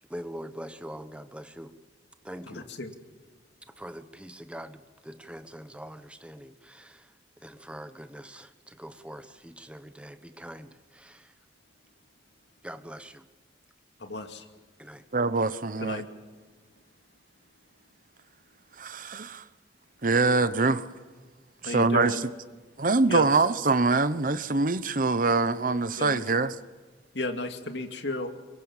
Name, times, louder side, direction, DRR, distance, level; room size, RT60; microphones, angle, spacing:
voice 1, 0.1-1.8 2.2-2.7 3.8-7.1 7.4-11.3 12.6-13.2 14.8-15.0, equal, 5° right, 1.1 m, -43 dB
voice 2, 2.5-2.9 14.0-14.5 15.8-16.1 21.6-22.3 23.1-23.3 26.0-26.2 27.1-28.3, left 2 dB, 70° left, 2.3 m, -33 dB
voice 3, 15.1-16.0 18.8-19.4 20.0-20.9 21.6-22.3 22.8-26.6, right 3 dB, 45° right, 1.0 m, -24 dB
24.5 x 22.0 x 7.3 m
head